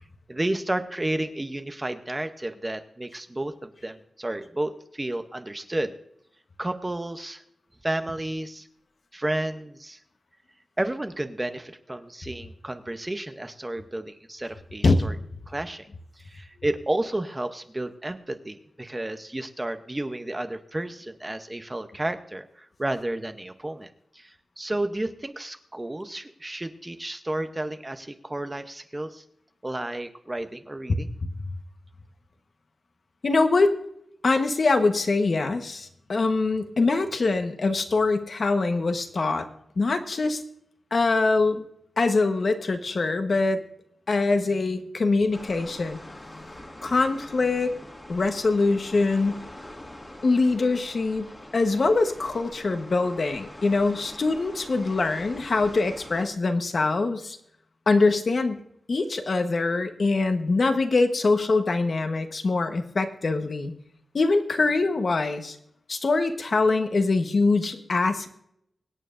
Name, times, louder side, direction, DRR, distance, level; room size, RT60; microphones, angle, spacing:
voice 1, 0.3-5.9 6.6-7.4 7.8-8.7 9.1-10.0 10.8-15.2 15.5-15.9 16.2-29.2 29.6-31.1, right 1 dB, 15° right, 8 dB, 0.7 m, -32 dB
voice 2, 14.8-15.2 31.2-31.3 33.2-33.7 34.2-39.5 39.8-40.4 40.9-41.6 42.0-43.6 44.1-46.1 46.8-47.7 48.1-49.4 50.2-57.4 57.9-58.6 58.9-63.7 64.1-65.6 65.9-68.3, left 3 dB, 45° left, 7 dB, 1.1 m, -23 dB
sound 1, 45.3-56.3, left 1 dB, 20° left, 1.9 m, -44 dB
24.5 x 9.0 x 2.5 m, 0.74 s
wide cardioid pair, 135°, 0 cm